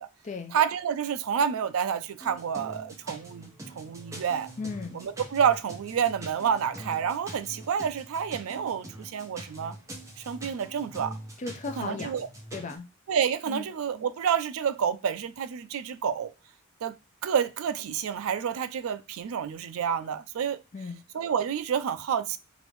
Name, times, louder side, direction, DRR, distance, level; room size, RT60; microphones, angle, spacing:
voice 1, 0.5-3.5 3.8-4.5 4.9-9.7 10.2-11.1 11.8-12.3 13.1-16.3 16.8-16.9 17.2-20.6 21.1-22.4, right 7 dB, 75° right, 0.3 m, -29 dB
sound 1, 2.2-12.8, right 1 dB, 15° right, 0.6 m, -44 dB
voice 2, 4.6-5.0 11.4-12.1 12.5-12.8 13.5-13.7 20.7-21.0, left 4 dB, 35° left, 0.4 m, -36 dB
4.9 x 2.5 x 3.1 m
head